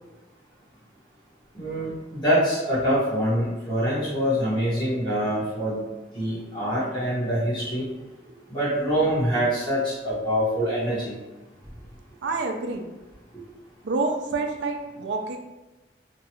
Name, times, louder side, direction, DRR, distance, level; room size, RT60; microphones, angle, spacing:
voice 1, 1.5-5.8 6.1-7.9 8.5-11.1, equal, 25° left, -12 dB, 1.2 m, -25 dB
voice 2, 12.2-12.9 13.8-15.4, right 3 dB, 75° right, 4 dB, 0.4 m, -28 dB
2.9 x 2.3 x 2.9 m, 1.1 s
head